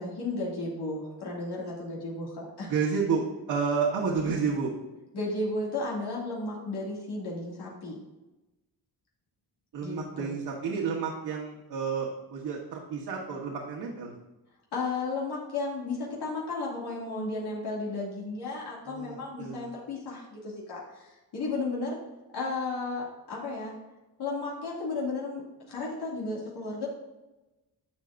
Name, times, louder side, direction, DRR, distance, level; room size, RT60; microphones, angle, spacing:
voice 1, 0.0-2.7 5.1-8.0 9.8-10.4 14.7-22.0 22.3-23.7 24.2-25.4 25.7-26.9, left 3 dB, 80° left, -4 dB, 2.4 m, -34 dB
voice 2, 2.7-4.7 9.7-14.2 18.9-19.7, right 5 dB, 70° right, -3 dB, 1.4 m, -30 dB
11.0 x 7.2 x 2.6 m, 1.0 s
cardioid pair, 120°, 39 cm